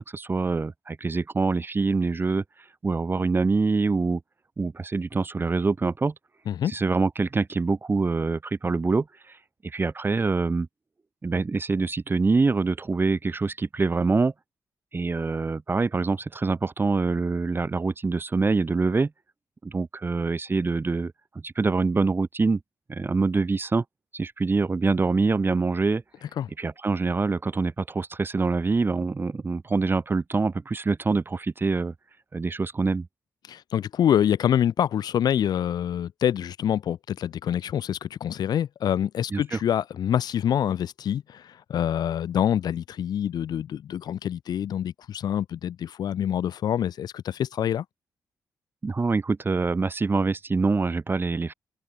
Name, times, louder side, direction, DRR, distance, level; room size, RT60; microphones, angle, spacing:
voice 1, 0.0-2.4 2.8-4.2 4.6-6.1 6.7-9.1 9.6-10.7 11.2-14.3 14.9-19.1 19.6-21.1 21.4-22.6 22.9-23.8 24.1-26.0 26.6-31.9 32.3-33.1 39.3-39.6 48.8-51.5, right 4 dB, 30° right, 0.6 m, -25 dB
voice 2, 33.5-47.8, left 10 dB, 65° left, 0.4 m, -26 dB
supercardioid pair, 55°, 7 cm